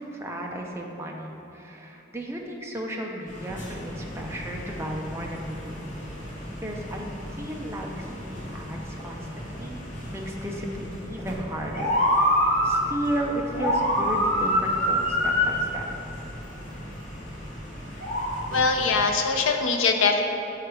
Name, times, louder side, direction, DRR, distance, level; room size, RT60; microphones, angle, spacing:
voice 1, 0.0-5.9 6.6-7.1 7.3-9.8 10.1-12.3 12.6-15.9, right 1 dB, 15° right, 0 dB, 0.6 m, -34 dB
sound 1, 3.3-19.1, equal, 35° left, 1.6 m, -29 dB
voice 2, 18.5-20.2, left 4 dB, 80° left, 3 dB, 0.6 m, -22 dB
7.0 x 4.7 x 4.8 m, 2.9 s
head